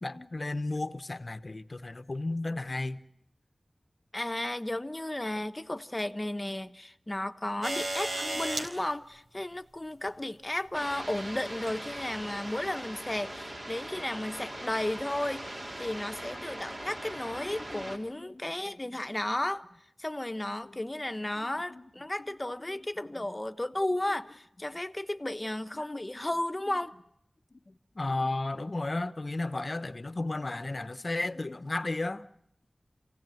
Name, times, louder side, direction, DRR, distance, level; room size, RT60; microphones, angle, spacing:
voice 1, 0.0-3.0 8.3-8.4 17.3-18.4 20.6-20.8 21.4-21.9 25.8-26.0 27.5-32.3, left 2 dB, 50° left, 1.0 m, -34 dB
voice 2, 4.1-19.6 20.0-26.9, left 1 dB, 25° left, 1.1 m, -34 dB
sound 1, 7.6-8.7 10.1-10.2 11.5-11.8 12.7-12.8, right 1 dB, 85° right, 4.0 m, -33 dB
sound 2, 10.7-18.0, right 1 dB, 45° right, 3.8 m, -41 dB
28.5 x 17.0 x 9.3 m
wide cardioid pair, 70°, 0 cm